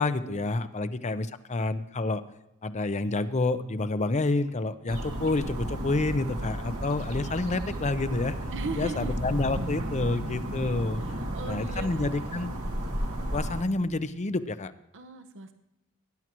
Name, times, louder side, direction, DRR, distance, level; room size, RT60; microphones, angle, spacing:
voice 1, 0.0-2.2 2.6-8.4 8.8-11.0 11.4-12.5 13.3-14.7, left 2 dB, 30° left, 12 dB, 0.6 m, -28 dB
sound 1, 4.9-13.6, right 1 dB, 85° right, 1.9 m, -33 dB
voice 2, 8.5-9.1 11.0-12.0 12.3-12.6 14.9-15.5, right 4 dB, 60° right, 8 dB, 0.9 m, -38 dB
18.5 x 10.5 x 3.0 m, 0.89 s
head